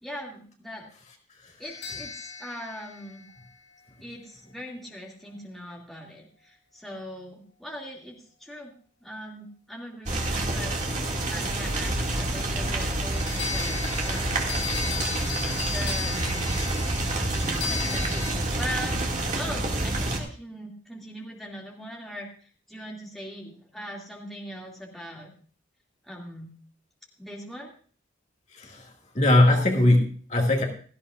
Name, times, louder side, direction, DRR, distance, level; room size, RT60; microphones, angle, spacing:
voice 1, 0.0-0.9 1.6-3.3 4.0-8.7 9.0-11.0 11.3-14.6 15.7-16.5 17.6-19.1 19.4-25.3 26.0-26.5 27.2-27.7, equal, ahead, -3 dB, 2.3 m, -40 dB
sound 1, 1.6-3.9 13.1-18.3, left 6 dB, 75° left, 8.0 m, -36 dB
sound 2, 10.1-20.2, right 2 dB, 40° right, 2.2 m, -28 dB
voice 2, 17.3-17.7 28.5-28.9 29.1-30.6, left 1 dB, 40° left, 0 dB, 2.0 m, -21 dB
17.0 x 14.5 x 2.5 m, 0.43 s
head